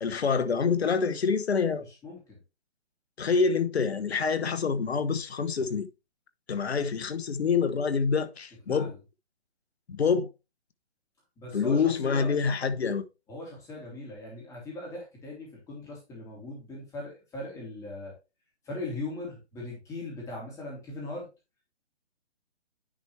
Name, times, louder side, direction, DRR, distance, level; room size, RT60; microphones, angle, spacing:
voice 1, 0.0-1.9 3.2-5.9 6.5-8.9 9.9-10.3 11.5-13.0, left 5 dB, 70° left, 1.0 m, -26 dB
voice 2, 1.9-2.4 8.7-9.0 11.4-12.3 13.3-18.1 18.6-21.3, left 2 dB, 10° left, 2.8 m, -39 dB
10.0 x 4.4 x 3.2 m
figure-of-eight pair, 150°, 34 cm